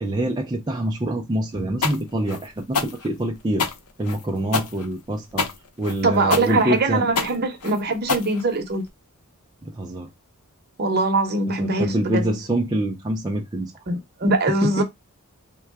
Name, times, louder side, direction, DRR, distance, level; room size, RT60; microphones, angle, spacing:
voice 1, 0.0-3.7 4.0-5.5 5.8-7.0 9.7-10.1 11.6-13.7 14.6-14.8, right 1 dB, 20° right, 0.4 m, -25 dB
sound 1, 1.8-8.9, left 5 dB, 80° left, 0.7 m, -27 dB
voice 2, 6.0-8.8 10.8-12.3 13.9-14.8, right 2 dB, 45° right, 0.9 m, -22 dB
3.7 x 2.2 x 4.5 m
head